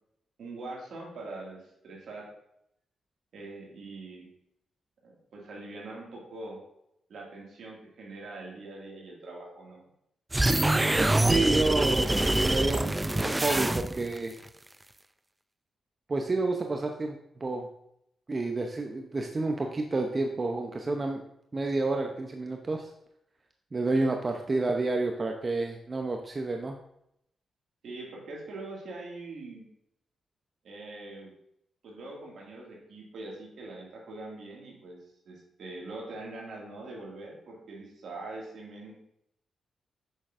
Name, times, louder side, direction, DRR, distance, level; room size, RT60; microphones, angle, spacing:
voice 1, 0.4-2.3 3.3-4.3 5.0-6.6 7.1-9.9 27.8-29.7 30.6-31.3 31.8-35.0 35.3-39.0, right 2 dB, 75° right, -2 dB, 2.1 m, -43 dB
sound 1, 10.3-14.2, right 1 dB, 15° right, 0.4 m, -25 dB
voice 2, 10.9-14.4 16.1-17.7 18.3-21.2 21.5-22.9 23.7-26.8, right 2 dB, 40° right, 3 dB, 0.7 m, -30 dB
7.8 x 6.3 x 2.6 m, 0.77 s
supercardioid pair, 55°, 0 cm